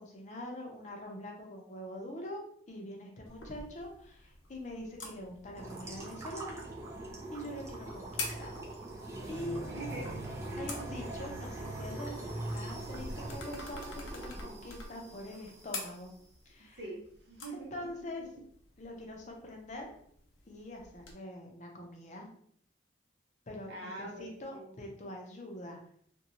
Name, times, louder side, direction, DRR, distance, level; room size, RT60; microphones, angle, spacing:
voice 1, 0.0-6.6 7.3-8.5 9.3-9.6 10.6-16.1 16.5-16.8 17.5-18.2 18.8-19.9 20.5-22.3 23.5-25.8, left 1 dB, 40° left, 1 dB, 0.6 m, -44 dB
sound 1, 3.3-21.1, left 3 dB, 80° left, 0.6 m, -48 dB
sound 2, 5.5-16.0, right 2 dB, 15° right, 0.4 m, -42 dB
voice 2, 9.7-10.7 16.8-17.9 18.3-18.4 23.7-24.8, right 2 dB, 60° right, -1 dB, 0.7 m, -44 dB
2.6 x 2.2 x 2.8 m, 0.63 s
head